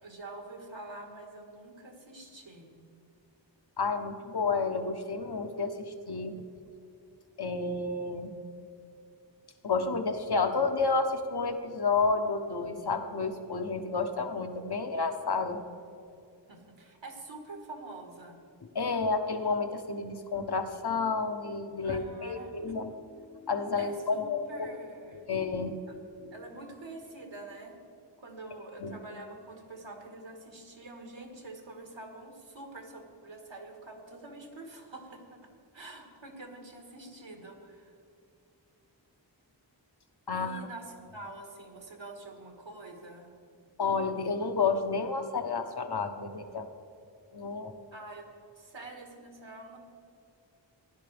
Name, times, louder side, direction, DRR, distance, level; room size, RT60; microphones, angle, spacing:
voice 1, 0.0-2.8 16.5-18.4 21.8-22.5 23.8-25.3 25.9-26.0 26.3-27.8 28.2-37.9 40.3-43.3 47.9-48.3 48.5-49.8, right 2 dB, 75° right, 2 dB, 1.8 m, -46 dB
voice 2, 3.8-6.3 7.4-8.3 9.6-15.6 18.7-24.7 25.3-26.0 28.8-29.0 40.3-40.7 43.8-46.7 47.3-47.7, left 4 dB, 55° left, 6 dB, 1.0 m, -30 dB
16.0 x 11.0 x 3.4 m, 2.6 s
wide cardioid pair, 50°, 46 cm